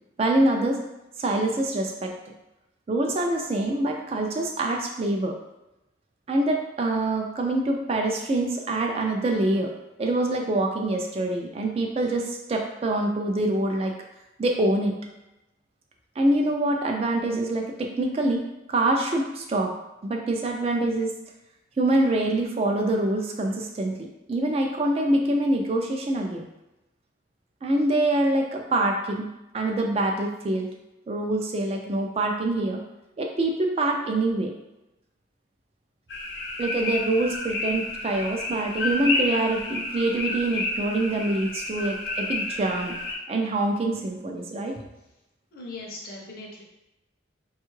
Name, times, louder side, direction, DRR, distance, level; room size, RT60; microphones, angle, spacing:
voice 1, 0.2-0.8 1.2-2.1 2.9-5.4 6.3-9.7 10.0-13.9 14.4-14.9 16.2-19.7 20.0-21.1 21.8-26.5 27.6-29.3 29.5-30.7 31.1-32.8 33.2-34.5 36.6-43.0 43.3-44.8, right 2 dB, 35° right, 2 dB, 0.3 m, -25 dB
sound 1, 36.1-43.1, left 2 dB, 85° left, 0.8 m, -30 dB
voice 2, 45.5-46.6, left 2 dB, 50° left, -2 dB, 0.6 m, -39 dB
3.4 x 2.3 x 3.0 m, 0.93 s
head